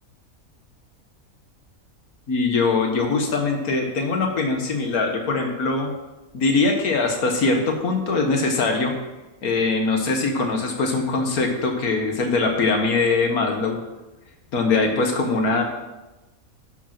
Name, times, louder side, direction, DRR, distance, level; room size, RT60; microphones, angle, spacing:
voice 1, 2.3-5.9 6.3-8.9 9.4-13.8 14.5-15.6, left 3 dB, 90° left, 3 dB, 1.9 m, -22 dB
11.5 x 5.1 x 6.0 m, 1.1 s
omnidirectional pair, 1.5 m